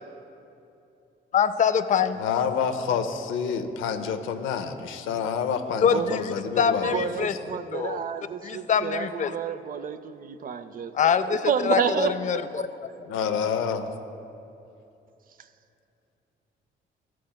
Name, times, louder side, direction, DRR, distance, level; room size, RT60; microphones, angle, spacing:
voice 1, 1.3-2.2 5.8-7.3 7.7-8.1 8.4-9.4 10.9-12.7 13.5-13.6, left 7 dB, 40° left, 12 dB, 0.4 m, -24 dB
voice 2, 2.2-6.9 13.1-13.9, left 6 dB, 85° left, 8 dB, 0.6 m, -28 dB
voice 3, 6.8-10.9 11.3-12.3, right 7 dB, 45° right, 12 dB, 0.4 m, -29 dB
13.0 x 7.5 x 2.2 m, 2.8 s
cardioid pair, 90°, 20 cm